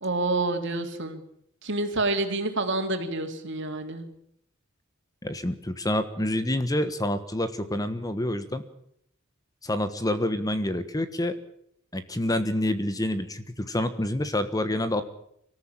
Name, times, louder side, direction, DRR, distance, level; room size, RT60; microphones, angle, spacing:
voice 1, 0.0-1.2 1.6-4.0, right 2 dB, 60° right, 5 dB, 3.4 m, -28 dB
voice 2, 5.2-8.6 9.6-11.3 11.9-15.0, left 1 dB, 20° left, 11 dB, 1.4 m, -27 dB
24.5 x 14.5 x 8.9 m, 0.72 s
head